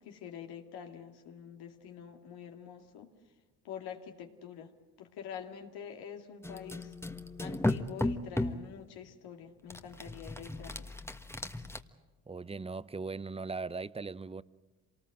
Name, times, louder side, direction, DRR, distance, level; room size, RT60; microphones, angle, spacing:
voice 1, 0.0-3.1 3.6-4.7 5.0-6.9 7.4-10.9, left 8 dB, 75° left, 2.5 m, -46 dB
sound 1, 6.4-8.7 9.7-11.8, left 1 dB, 5° left, 1.4 m, -35 dB
voice 2, 12.3-14.4, right 4 dB, 15° right, 0.7 m, -39 dB
26.5 x 19.5 x 7.9 m
supercardioid pair, 65°, 38 cm